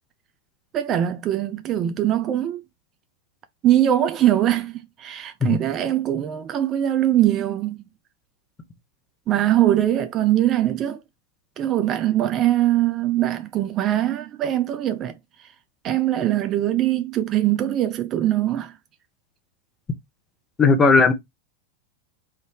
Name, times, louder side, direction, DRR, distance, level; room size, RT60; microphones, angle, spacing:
voice 1, 0.7-2.6 3.6-7.9 9.3-11.0 11.6-15.2 15.8-18.7, right 12 dB, 30° right, 0.5 m, -22 dB
voice 2, 20.6-21.1, left 4 dB, 20° left, 1.0 m, -16 dB
3.5 x 2.6 x 4.7 m
figure-of-eight pair, 90°, 0 cm